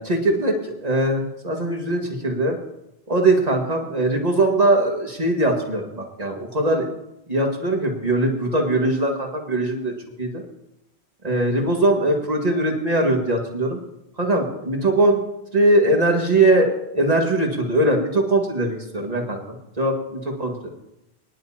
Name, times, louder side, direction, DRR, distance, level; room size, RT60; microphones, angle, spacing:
voice 1, 0.0-2.6 3.1-6.9 7.3-10.4 11.2-13.8 14.2-15.2 15.5-20.6, right 2 dB, 40° right, 1 dB, 2.0 m, -21 dB
23.5 x 10.5 x 2.9 m, 0.87 s
omnidirectional pair, 1.0 m